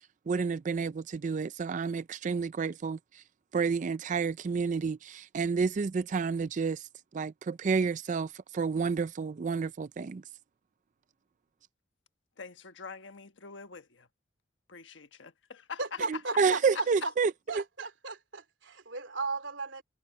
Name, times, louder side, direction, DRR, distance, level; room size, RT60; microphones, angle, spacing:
voice 1, 0.3-3.2 3.5-6.9 7.1-10.2 16.1-17.6, right 5 dB, 40° right, 0.4 m, -30 dB
voice 2, 12.4-14.1 14.7-15.8, left 5 dB, 90° left, 1.3 m, -46 dB
voice 3, 15.8-17.1 17.5-19.8, right 3 dB, 90° right, 2.9 m, -36 dB
head